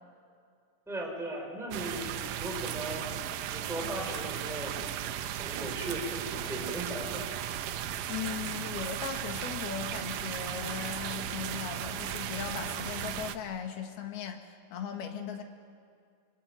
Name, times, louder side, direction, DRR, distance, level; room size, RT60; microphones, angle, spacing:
voice 1, 0.9-3.0 3.5-4.9 5.3-7.3, right 1 dB, ahead, -1 dB, 4.7 m, -38 dB
sound 1, 1.7-13.4, right 10 dB, 70° right, 2.2 m, -36 dB
voice 2, 8.1-15.4, left 7 dB, 85° left, 5 dB, 3.8 m, -38 dB
26.0 x 24.5 x 9.3 m, 2.2 s
omnidirectional pair, 4.3 m